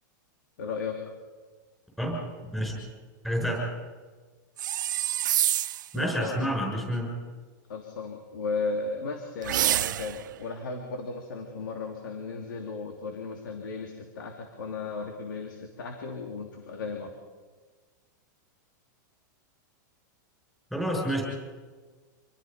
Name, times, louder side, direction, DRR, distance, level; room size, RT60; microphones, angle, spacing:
voice 1, 0.6-1.0 5.9-6.4 7.7-17.1, left 4 dB, 80° left, 3 dB, 3.2 m, -35 dB
voice 2, 3.2-3.6 5.9-7.1 20.7-21.2, equal, ahead, -1 dB, 6.0 m, -28 dB
sound 1, 4.6-5.9 9.4-10.3, right 12 dB, 70° right, 0.6 m, -27 dB
27.0 x 20.5 x 5.3 m, 1.4 s
supercardioid pair, 180°, 11 cm